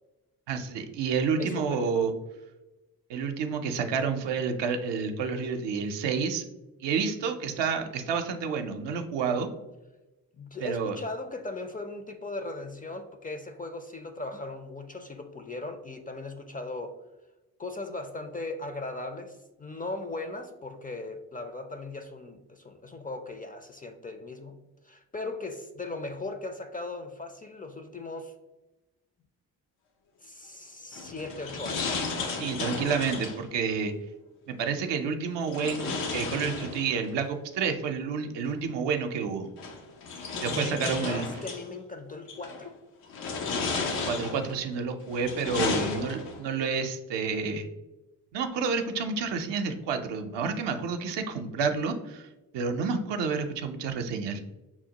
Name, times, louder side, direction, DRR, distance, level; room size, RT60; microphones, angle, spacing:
voice 1, 0.5-2.1 3.1-6.4 6.8-9.5 10.6-11.0 32.4-33.9 34.5-39.5 40.4-41.3 43.8-47.7 48.3-52.3 52.5-54.4, right 5 dB, 65° right, 6 dB, 0.6 m, -29 dB
voice 2, 1.4-2.0 10.3-17.0 17.6-24.6 24.8-28.3 30.2-32.0 40.1-42.8 45.5-46.1, left 2 dB, 20° left, 6 dB, 0.4 m, -38 dB
sound 1, 30.9-33.5 35.5-37.1 38.5-38.6 39.6-41.6 42.3-42.7 43.1-44.6 45.1-46.5, left 4 dB, 85° left, 0.6 m, -33 dB
5.8 x 2.1 x 2.8 m, 1.1 s
hypercardioid pair, 45°, 45 cm